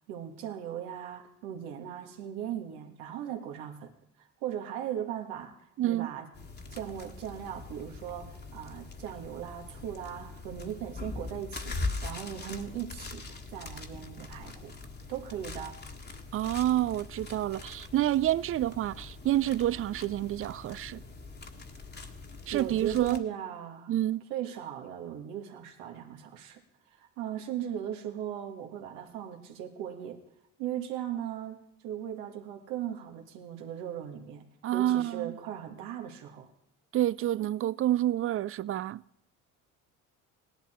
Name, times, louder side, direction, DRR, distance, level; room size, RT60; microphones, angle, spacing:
voice 1, 0.1-3.9 4.2-5.5 5.8-6.3 6.7-14.7 15.1-15.8 22.5-23.9 24.3-26.6 26.9-30.2 30.6-31.6 31.8-36.5, right 10 dB, 80° right, 1.8 m, -38 dB
voice 2, 5.8-6.1 16.3-21.0 22.5-23.2 23.9-24.2 34.6-35.4 36.9-39.0, right 13 dB, 35° right, 0.4 m, -28 dB
sound 1, 6.3-23.2, left 3 dB, 25° left, 1.5 m, -42 dB
17.0 x 11.5 x 4.4 m
supercardioid pair, 70°, 38 cm